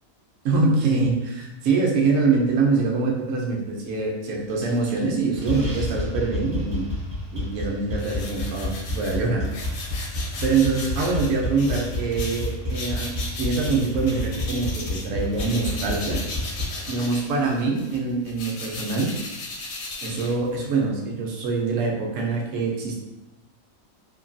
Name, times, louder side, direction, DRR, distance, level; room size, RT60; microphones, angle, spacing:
voice 1, 0.4-6.9 7.3-9.5 10.4-13.1 13.4-16.6 16.9-19.1 20.0-23.0, right 4 dB, 70° right, 0 dB, 0.9 m, -24 dB
sound 1, 4.5-5.1 5.4-16.7, left 1 dB, 40° right, 0.6 m, -30 dB
sound 2, 8.0-15.1 15.3-20.8, left 2 dB, 80° left, 1.0 m, -36 dB
3.0 x 2.3 x 2.5 m, 0.97 s
omnidirectional pair, 1.5 m